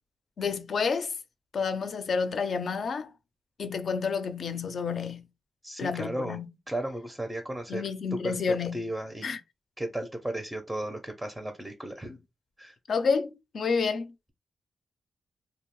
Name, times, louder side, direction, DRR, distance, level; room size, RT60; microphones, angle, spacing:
voice 1, 0.4-1.1 1.5-3.1 3.6-5.3 5.8-6.5 7.7-8.9 9.2-9.4 12.1-12.2 12.9-14.3, left 5 dB, 65° left, 0.4 m, -29 dB
voice 2, 5.6-6.4 6.7-7.8 8.2-9.3 9.8-12.1 12.6-12.7, right 1 dB, 10° right, 0.5 m, -35 dB
2.6 x 2.0 x 3.0 m
cardioid pair, 95°, 0 cm